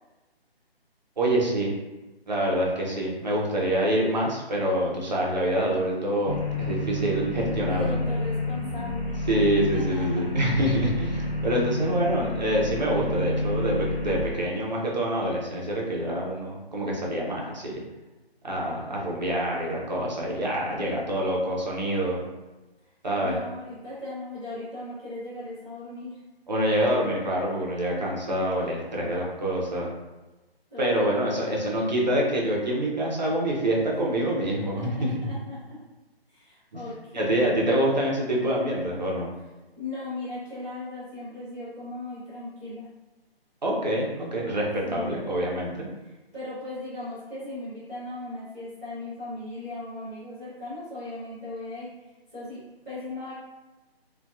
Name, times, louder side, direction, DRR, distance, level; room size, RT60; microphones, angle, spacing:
voice 1, 1.2-1.7 2.3-8.0 9.3-17.8 18.4-22.2 23.0-23.4 26.5-29.9 30.8-35.1 36.7-36.8 37.1-39.3 43.6-45.9, right 1 dB, 45° right, -2 dB, 0.6 m, -26 dB
sound 1, 6.3-14.3, left 2 dB, 40° left, 0.6 m, -29 dB
voice 2, 7.6-9.1 9.7-10.3 23.2-26.2 30.7-31.1 34.5-35.8 36.3-37.5 39.7-42.9 44.8-45.1 46.0-53.3, left 2 dB, 5° right, -28 dB, 0.6 m, -38 dB
2.6 x 2.2 x 2.3 m, 1.1 s
figure-of-eight pair, 150°, 31 cm